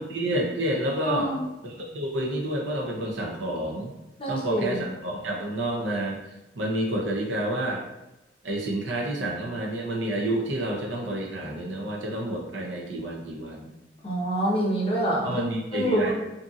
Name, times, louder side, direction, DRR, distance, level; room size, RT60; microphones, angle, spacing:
voice 1, 0.0-1.3 1.6-3.9 4.3-6.2 6.6-7.8 8.4-13.7 15.2-16.1, right 1 dB, 85° right, -1 dB, 0.7 m, -29 dB
voice 2, 1.0-1.4 4.2-4.8 14.0-15.4 15.7-16.1, right 1 dB, 30° left, -3 dB, 0.6 m, -26 dB
2.6 x 2.4 x 2.6 m, 0.94 s
head